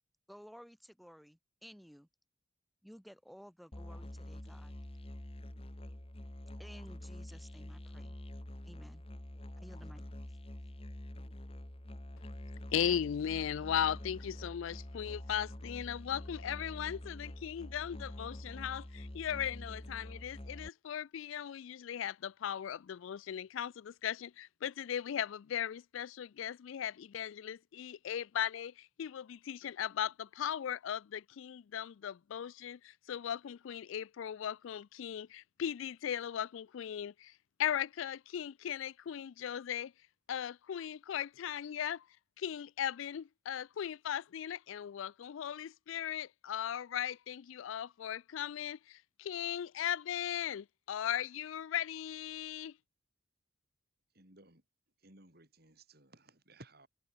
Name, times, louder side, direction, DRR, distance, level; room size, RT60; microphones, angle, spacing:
voice 1, 0.3-2.1 2.8-4.7 6.6-8.2 8.6-9.0 9.6-10.1, equal, ahead, 5.7 m, -55 dB
Musical instrument, 3.7-20.7, left 1 dB, 30° left, 2.1 m, -46 dB
voice 2, 12.7-37.3 37.6-39.9 40.3-42.1 42.4-52.7, left 9 dB, 75° left, 0.4 m, -38 dB
voice 3, 54.2-54.6 55.0-56.9, right 2 dB, 50° right, 5.4 m, -58 dB
head